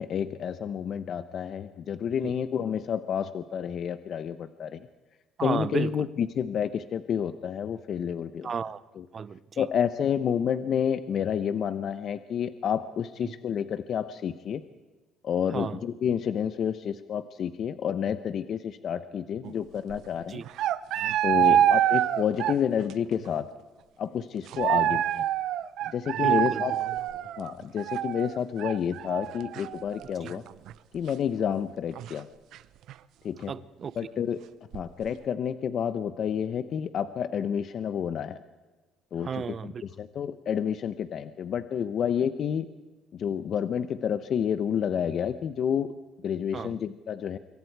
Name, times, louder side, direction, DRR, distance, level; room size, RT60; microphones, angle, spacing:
voice 1, 0.0-4.8 5.4-8.5 9.0-9.1 9.6-14.6 15.2-20.4 21.2-23.5 24.0-25.2 25.9-26.8 27.4-30.4 30.9-32.3 33.2-33.5 34.0-34.4 34.7-38.4 39.1-42.7 43.1-45.9 46.2-47.4, left 8 dB, 50° left, 0.8 m, -29 dB
voice 2, 5.4-6.1 8.4-8.8 9.1-9.7 13.2-13.3 15.5-15.8 20.3-20.4 21.4-21.6 26.1-26.6 30.2-30.3 33.5-33.9 39.2-39.8 46.5-46.7, right 6 dB, 35° right, 0.6 m, -33 dB
sound 1, 19.4-19.5 19.8-20.0 20.5-22.9 23.2-23.3 24.5-30.7 31.1-31.2 32.0-32.1 32.5-32.6 32.9-33.0 34.7-35.0, right 11 dB, 70° right, 0.7 m, -26 dB
25.5 x 23.0 x 4.7 m
cardioid pair, 130°, 0 cm